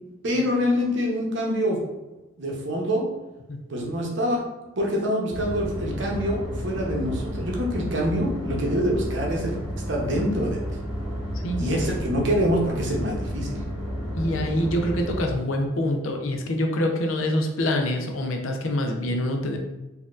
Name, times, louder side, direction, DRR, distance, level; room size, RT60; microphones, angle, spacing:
voice 1, 0.2-1.8 2.4-3.1 3.7-4.4 4.8-9.6 9.9-10.6 11.6-13.6, equal, 60° right, -1 dB, 0.8 m, -25 dB
sound 1, 5.3-15.3, equal, 5° left, 1.5 m, -31 dB
voice 2, 14.2-19.6, left 1 dB, 85° left, 3 dB, 0.6 m, -25 dB
4.2 x 2.7 x 2.4 m, 1.0 s
head